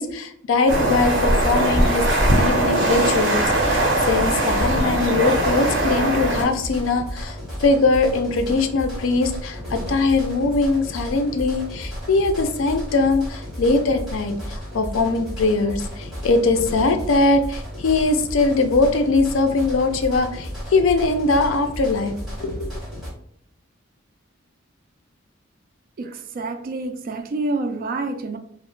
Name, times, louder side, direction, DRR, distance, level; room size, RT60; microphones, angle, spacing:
voice 1, 0.0-2.0 2.4-22.1 22.4-22.7, left 3 dB, 70° left, 7 dB, 0.4 m, -21 dB
sound 1, 0.7-6.4, right 1 dB, 60° right, 0.9 m, -20 dB
sound 2, 3.5-23.1, equal, ahead, 1.4 m, -33 dB
voice 2, 26.0-28.4, right 2 dB, 45° right, 7 dB, 0.3 m, -28 dB
3.0 x 2.0 x 3.1 m, 0.65 s
head